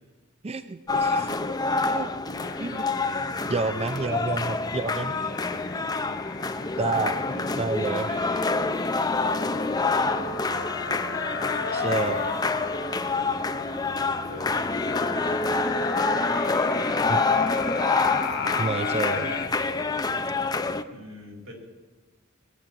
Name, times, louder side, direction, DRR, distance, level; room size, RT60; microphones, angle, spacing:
voice 1, 0.4-1.2 1.9-2.1 2.6-2.8 3.5-5.1 6.8-7.2 7.6-8.1 11.7-12.3 17.1-17.2 18.6-19.3, right 3 dB, 30° right, 10 dB, 0.5 m, -29 dB
sound 1, 0.9-20.8, left 3 dB, 20° left, 0.6 m, -27 dB
voice 2, 1.0-1.4 3.2-3.6 3.9-4.4 4.8-6.4 6.7-7.5 8.0-10.5 12.3-12.6 13.2-15.5 16.1-17.5 18.0-18.8 20.9-21.5, equal, 90° right, 0 dB, 4.5 m, -43 dB
sound 2, 2.3-19.5, left 4 dB, 55° left, 1.6 m, -35 dB
20.5 x 7.6 x 8.6 m, 1.3 s
head